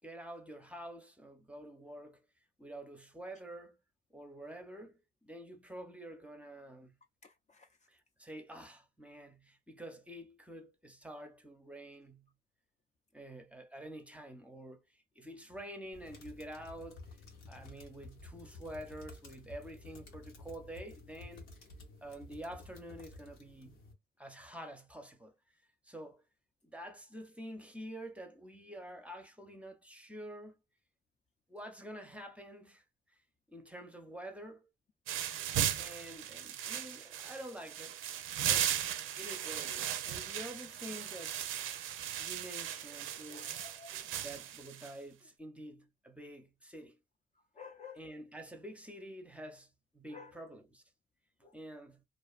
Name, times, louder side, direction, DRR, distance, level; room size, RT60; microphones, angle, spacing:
voice 1, 0.0-2.2 2.6-3.8 4.1-6.9 7.9-12.3 13.1-17.2 17.5-21.5 22.0-23.8 24.2-25.3 25.8-26.2 26.6-30.5 31.5-32.8 33.1-33.2 33.5-34.7 35.7-38.0 38.4-38.7 39.2-41.4 42.2-43.6 44.2-47.0 47.9-50.8 51.5-52.0, right 1 dB, 5° right, 0.6 m, -48 dB
voice 2, 7.2-7.7 43.3-44.2 47.6-48.0 50.1-50.3 51.4-51.5, left 6 dB, 35° left, 0.4 m, -52 dB
sound 1, 15.9-23.9, left 2 dB, 85° left, 1.0 m, -52 dB
sound 2, 35.1-44.9, right 10 dB, 85° right, 0.5 m, -37 dB
2.5 x 2.2 x 2.3 m
cardioid pair, 90°, 20 cm